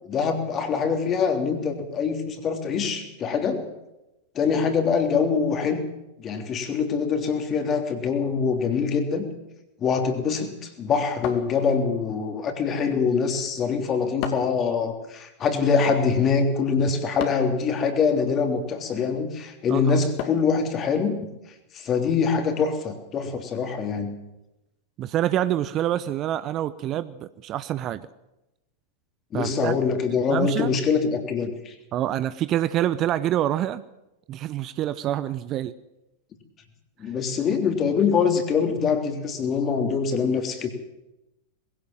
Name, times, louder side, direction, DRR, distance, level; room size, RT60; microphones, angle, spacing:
voice 1, 0.0-3.6 4.3-5.9 6.2-9.3 9.8-21.2 21.7-24.2 29.3-31.7 37.0-40.7, left 5 dB, 30° left, 6 dB, 3.3 m, -24 dB
sound 1, 11.2-12.1 14.2-14.7 17.2-17.6 20.2-20.6, left 9 dB, 45° left, 2.5 m, -34 dB
voice 2, 25.0-28.1 29.3-29.8 30.1-30.7 31.9-33.8 34.3-35.8, right 12 dB, 35° right, 15 dB, 0.8 m, -26 dB
21.0 x 16.5 x 7.5 m, 0.94 s
figure-of-eight pair, 90°, 0 cm